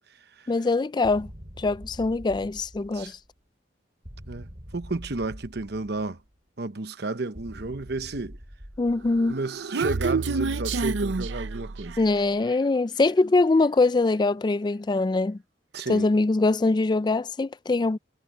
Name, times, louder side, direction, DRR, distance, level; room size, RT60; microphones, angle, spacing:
voice 1, 0.5-1.3 1.6-3.2 8.8-9.4 12.0-15.4 15.9-18.0, left 3 dB, 25° left, 0.3 m, -23 dB
sound 1, 1.0-3.3 4.0-6.3 7.4-9.6, equal, 40° right, 6.3 m, -45 dB
voice 2, 4.3-6.2 6.6-8.4 9.3-12.0 15.7-16.1, right 3 dB, 60° right, 1.0 m, -32 dB
Human voice, 9.2-12.2, right 4 dB, 85° right, 0.7 m, -28 dB
head